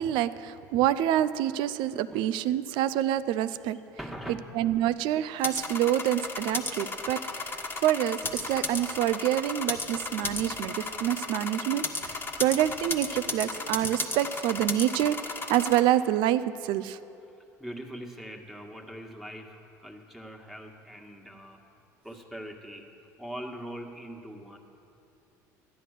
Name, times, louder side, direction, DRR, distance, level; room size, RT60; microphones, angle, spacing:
voice 1, 0.0-3.8 4.6-17.0, right 12 dB, 65° right, 14 dB, 0.5 m, -27 dB
voice 2, 4.0-4.5 17.6-21.6 22.0-22.9 23.2-24.6, equal, ahead, 1 dB, 1.7 m, -42 dB
sound 1, 5.4-15.8, left 3 dB, 25° left, 1.4 m, -34 dB
Squeak / Writing, 8.2-9.1 9.8-10.6 11.1-13.3, left 2 dB, 80° left, 1.7 m, -52 dB
13.5 x 9.9 x 6.6 m, 2.8 s
hypercardioid pair, 75°, 9 cm